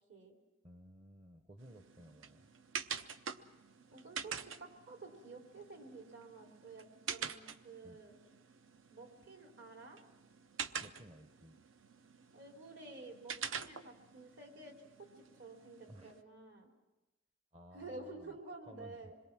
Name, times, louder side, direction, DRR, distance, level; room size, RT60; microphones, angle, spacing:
voice 1, 0.6-2.5 7.8-8.0 10.8-11.6 15.9-16.1 17.5-18.4 18.7-19.1, equal, 30° right, 7 dB, 0.8 m, -56 dB
sound 1, 1.6-16.2, right 6 dB, 80° right, 0.8 m, -47 dB
voice 2, 3.9-8.1 8.9-10.0 12.3-14.8 15.1-16.7 17.7-19.2, right 3 dB, 65° right, 2 dB, 3.4 m, -51 dB
26.5 x 22.0 x 6.0 m, 1.1 s
head